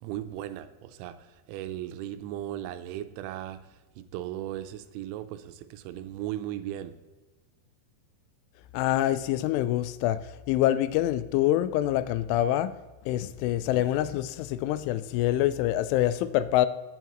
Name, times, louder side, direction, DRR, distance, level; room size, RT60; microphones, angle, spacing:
voice 1, 0.0-1.2 1.5-3.6 4.0-6.9, right 12 dB, 85° right, 10 dB, 3.0 m, -36 dB
voice 2, 8.7-12.7 13.1-16.7, left 13 dB, 90° left, 13 dB, 3.1 m, -26 dB
18.5 x 8.0 x 3.0 m, 1.2 s
omnidirectional pair, 5.4 m